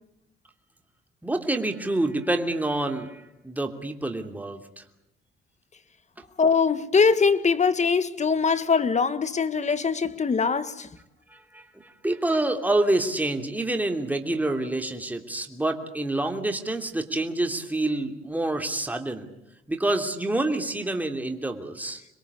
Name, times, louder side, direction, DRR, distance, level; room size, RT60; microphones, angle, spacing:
voice 1, 1.2-4.8 11.3-19.3 19.7-22.0, right 2 dB, 10° right, 3.0 m, -27 dB
voice 2, 6.4-10.9, left 5 dB, 35° left, 1.7 m, -22 dB
26.5 x 22.0 x 8.4 m
cardioid pair, 90°, 20 cm